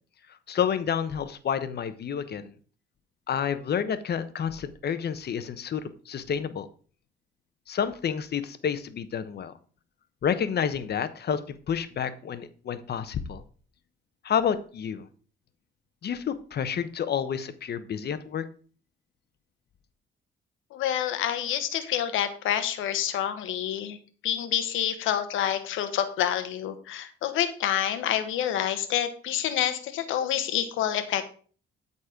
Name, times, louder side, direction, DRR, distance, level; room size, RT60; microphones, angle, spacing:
voice 1, 0.5-2.5 3.3-6.7 7.7-9.5 10.2-11.4 11.7-13.4 14.2-15.1 16.0-18.4, left 8 dB, 55° left, 12 dB, 1.0 m, -29 dB
voice 2, 20.7-24.0 24.2-31.2, left 10 dB, 90° left, 9 dB, 1.2 m, -28 dB
12.5 x 4.2 x 5.1 m, 0.42 s
cardioid pair, 90°, 20 cm